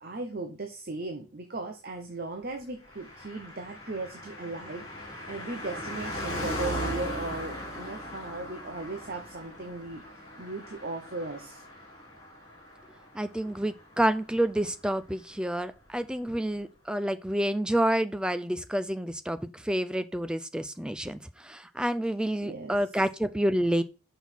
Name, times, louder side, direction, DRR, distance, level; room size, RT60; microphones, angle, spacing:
voice 1, 0.0-11.6 22.4-22.8, right 2 dB, 45° right, 0.9 m, -37 dB
Car passing by, 2.8-14.7 14.9-15.0, equal, 20° left, 3.2 m, -39 dB
voice 2, 13.1-23.8, right 1 dB, 5° right, 0.4 m, -29 dB
6.1 x 5.6 x 4.4 m
head